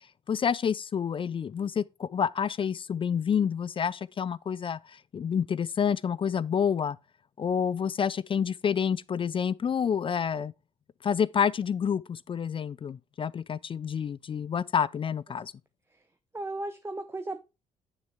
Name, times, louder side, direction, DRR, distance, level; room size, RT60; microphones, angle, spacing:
voice 1, 0.3-7.0 7.4-10.5 11.0-15.5, left 7 dB, 30° left, 0.4 m, -28 dB
voice 2, 16.3-17.4, right 2 dB, 15° right, 0.9 m, -35 dB
9.6 x 6.3 x 3.4 m
figure-of-eight pair, 45°, 17 cm